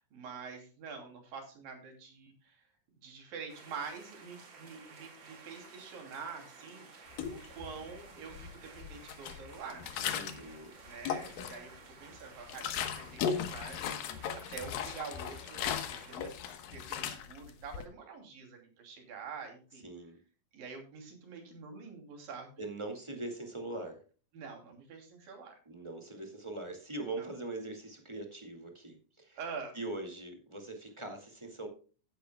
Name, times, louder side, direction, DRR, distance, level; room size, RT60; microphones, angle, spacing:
voice 1, 0.0-2.6 3.0-9.9 10.8-14.0 14.3-19.9 20.5-22.5 24.3-25.5 27.2-27.3 29.4-29.7, right 5 dB, 80° right, 4 dB, 4.6 m, -46 dB
sound 1, 3.5-16.2, right 4 dB, 40° right, 2.3 m, -55 dB
sound 2, 7.1-7.9 8.3-10.5 10.9-11.8 12.1-17.8, left 8 dB, 80° left, 2.9 m, -37 dB
voice 2, 10.1-10.8 19.8-20.2 22.6-24.0 25.6-29.4 29.7-31.7, right 2 dB, 15° right, 3 dB, 1.2 m, -42 dB
15.0 x 10.5 x 2.2 m, 0.37 s
omnidirectional pair, 3.9 m